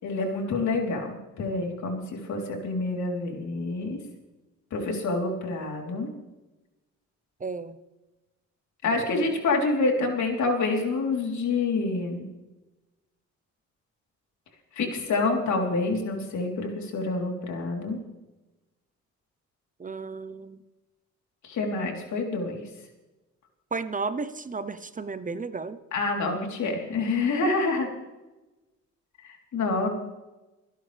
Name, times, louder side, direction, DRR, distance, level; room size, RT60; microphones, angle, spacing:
voice 1, 0.0-4.0 4.7-6.1 8.8-12.3 14.8-18.0 21.4-22.7 25.9-27.9 29.2-29.9, left 3 dB, 70° left, 1 dB, 3.7 m, -27 dB
voice 2, 7.4-7.8 19.8-20.6 23.7-25.8, right 4 dB, 25° right, 12 dB, 0.8 m, -33 dB
26.0 x 11.0 x 3.4 m, 1.1 s
cardioid pair, 90°, 30 cm